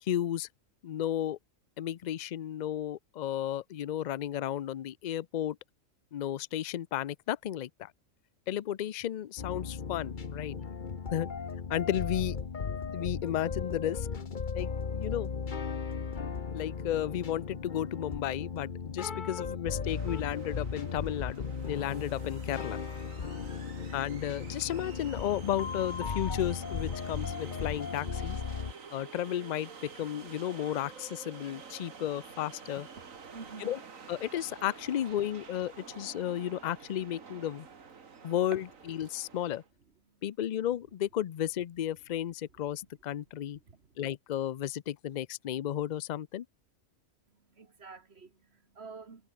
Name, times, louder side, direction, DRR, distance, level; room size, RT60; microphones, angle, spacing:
voice 1, 0.0-0.5 0.8-1.4 1.8-5.6 6.1-7.9 8.5-10.6 11.1-11.3 11.7-12.4 12.9-14.1 14.5-15.3 16.5-22.8 23.9-28.4 28.9-32.9 33.6-33.8 34.1-37.7 38.2-39.6 40.2-43.6 44.0-46.5, left 11 dB, 70° left, 0.4 m, -33 dB
sound 1, 9.4-28.7, left 5 dB, 40° left, 1.2 m, -36 dB
sound 2, 19.8-39.7, right 5 dB, 75° right, 2.3 m, -50 dB
voice 2, 33.3-33.7 43.7-43.8 47.6-49.3, right 4 dB, 50° right, 2.0 m, -48 dB
omnidirectional pair, 1.4 m